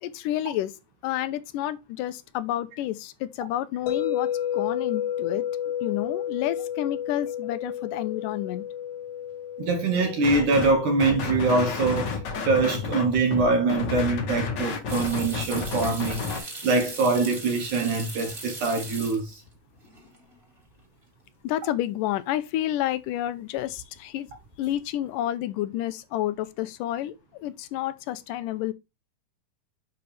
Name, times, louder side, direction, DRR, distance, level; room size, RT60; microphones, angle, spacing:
voice 1, 0.0-0.7 1.0-5.4 5.8-8.6 21.4-24.3 24.6-28.7, left 13 dB, 85° left, 2.3 m, -30 dB
sound 1, 3.9-13.9, left 10 dB, 65° left, 1.3 m, -33 dB
voice 2, 9.6-19.4, right 3 dB, 70° right, 2.7 m, -24 dB
sound 2, 10.2-10.7 11.0-16.4, left 5 dB, 50° left, 1.4 m, -31 dB
sound 3, 14.9-19.5 19.8-20.4 20.8-20.9 23.6-24.0 24.3-24.8, right 2 dB, 20° right, 2.3 m, -39 dB
9.6 x 5.2 x 3.4 m
omnidirectional pair, 3.8 m